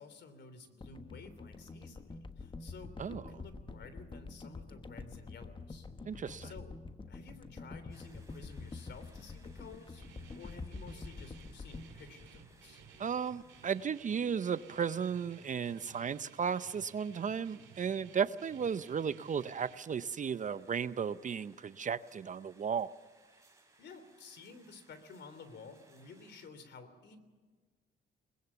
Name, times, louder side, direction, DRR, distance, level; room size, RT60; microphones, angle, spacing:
voice 1, 0.0-6.7 7.1-10.0 10.3-12.8 23.8-27.2, left 4 dB, 60° left, 11 dB, 3.1 m, -53 dB
sound 1, 0.8-13.1 13.4-13.6, left 3 dB, 25° left, 1.2 m, -47 dB
voice 2, 6.1-6.5 13.0-22.9, right 7 dB, 40° right, 15 dB, 0.6 m, -35 dB
sound 2, 7.9-26.5, right 3 dB, 15° right, 5.1 m, -66 dB
Guitar, 10.0-19.8, right 8 dB, 75° right, 2.2 m, -57 dB
22.0 x 20.0 x 7.1 m, 1.4 s
cardioid pair, 90°, 20 cm